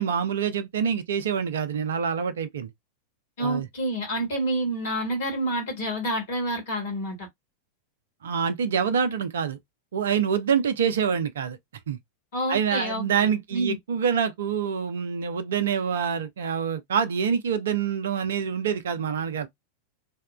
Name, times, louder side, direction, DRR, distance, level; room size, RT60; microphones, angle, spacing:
voice 1, 0.0-2.7 3.4-3.7 8.2-9.6 9.9-11.6 11.9-12.0 12.5-19.5, right 7 dB, 60° right, 0.4 m, -26 dB
voice 2, 3.4-7.3 12.3-13.0 13.5-13.8, right 1 dB, 55° left, 1.5 m, -28 dB
2.7 x 2.2 x 2.2 m
figure-of-eight pair, 90°, 0 cm